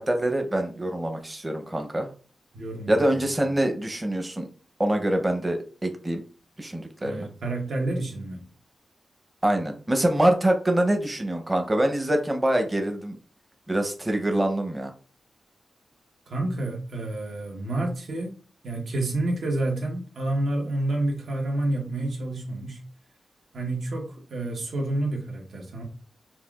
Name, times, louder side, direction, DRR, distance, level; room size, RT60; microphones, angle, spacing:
voice 1, 0.0-2.1 2.9-4.5 4.8-6.2 6.6-7.3 9.4-13.2 13.7-14.9, right 1 dB, 20° right, 0.7 m, -25 dB
voice 2, 2.5-3.0 7.0-8.5 16.3-18.3 18.6-22.8 23.5-25.8, right 2 dB, 80° right, 1.1 m, -29 dB
5.6 x 2.3 x 2.4 m
wide cardioid pair, 95°, 0 cm